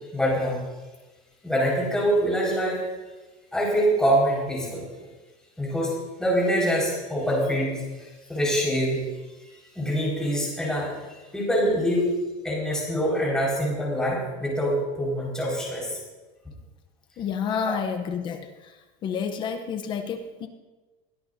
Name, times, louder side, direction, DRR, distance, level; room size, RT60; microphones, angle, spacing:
voice 1, 0.1-0.6 1.4-2.8 3.5-4.8 5.6-5.9 6.2-9.0 9.5-10.9 11.3-12.1 12.4-16.0 17.6-17.8, equal, 5° left, -4 dB, 5.1 m, -25 dB
voice 2, 17.2-18.7 19.0-20.5, left 6 dB, 30° left, 7 dB, 0.8 m, -30 dB
22.0 x 17.0 x 2.7 m, 1.2 s
cardioid pair, 170°, 17 cm